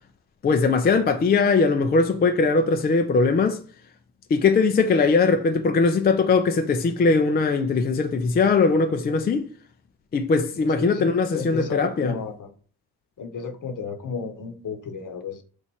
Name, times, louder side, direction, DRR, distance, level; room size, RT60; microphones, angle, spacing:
voice 1, 0.4-3.6 4.3-9.5 10.1-12.2, left 4 dB, 25° left, 0.3 m, -20 dB
voice 2, 10.8-12.5 13.2-15.4, left 5 dB, 40° left, 0.9 m, -33 dB
3.1 x 2.5 x 4.3 m
supercardioid pair, 55°, 47 cm